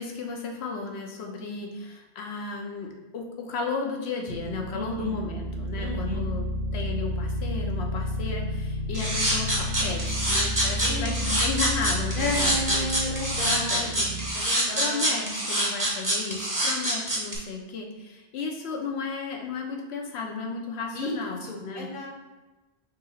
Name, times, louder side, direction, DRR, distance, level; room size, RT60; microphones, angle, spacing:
voice 1, 0.0-12.9 13.4-13.9 14.8-21.9, left 4 dB, 85° left, 2 dB, 0.9 m, -34 dB
sound 1, 4.3-14.3, left 1 dB, 50° right, 0.5 m, -31 dB
voice 2, 4.7-5.2 5.8-6.2 10.8-11.4 12.1-15.3 20.9-22.1, left 1 dB, 60° left, -1 dB, 1.0 m, -33 dB
sound 2, 8.9-17.4, right 1 dB, 20° right, 0.8 m, -26 dB
3.8 x 2.7 x 4.2 m, 1.1 s
omnidirectional pair, 1.1 m